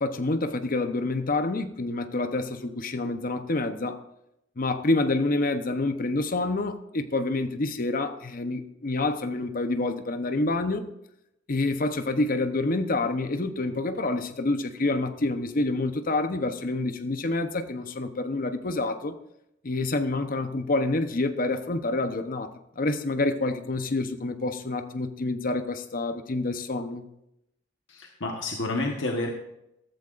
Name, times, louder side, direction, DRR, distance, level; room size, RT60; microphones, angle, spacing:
voice 1, 0.0-4.0 4.6-10.9 11.5-19.2 19.6-27.1, left 2 dB, 50° left, 0.9 m, -27 dB
voice 2, 27.9-29.3, left 2 dB, 70° left, 1.3 m, -29 dB
14.5 x 13.5 x 2.5 m
head